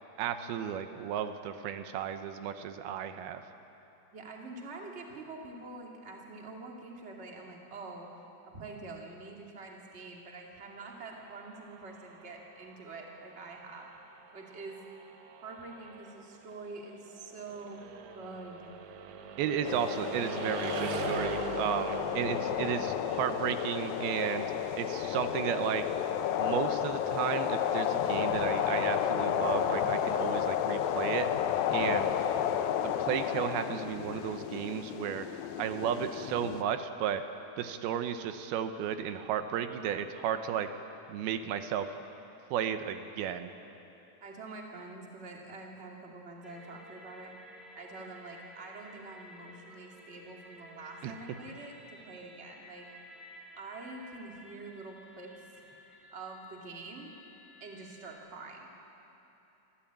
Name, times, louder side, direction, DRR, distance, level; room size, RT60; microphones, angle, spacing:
voice 1, 0.2-3.4 19.4-25.8 26.4-31.3 31.7-32.1 32.8-35.3 35.6-37.2 37.6-40.7 41.1-41.9 42.5-43.5 51.0-51.1, right 9 dB, 85° right, 9 dB, 2.7 m, -33 dB
voice 2, 4.1-8.1 8.4-13.9 14.3-14.8 15.4-17.9 18.1-18.7 19.6-19.8 44.2-47.3 47.7-52.9 53.6-55.3 56.1-57.1 57.6-58.7, right 3 dB, 20° right, 0 dB, 1.9 m, -46 dB
sound 1, 10.8-26.6, right 6 dB, 70° right, 1.8 m, -44 dB
sound 2, 19.7-36.6, left 9 dB, 80° left, 2.4 m, -32 dB
sound 3, 46.4-58.2, equal, ahead, 0.9 m, -54 dB
24.5 x 15.0 x 8.9 m, 3.0 s
omnidirectional pair, 4.4 m